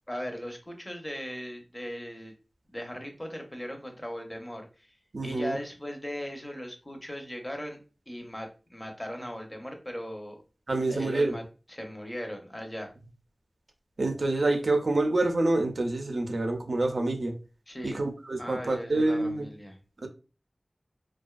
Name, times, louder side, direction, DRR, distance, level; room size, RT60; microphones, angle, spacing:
voice 1, 0.1-2.3 2.7-4.9 5.2-7.8 8.1-10.4 10.9-11.4 11.7-12.9 17.7-18.0 18.4-19.8, equal, 25° left, 0.6 m, -38 dB
voice 2, 5.1-5.6 10.7-11.4 14.0-17.3 17.8-19.5 20.0-20.1, right 2 dB, 80° right, 0.4 m, -27 dB
2.5 x 2.2 x 2.2 m
wide cardioid pair, 50°, 0 cm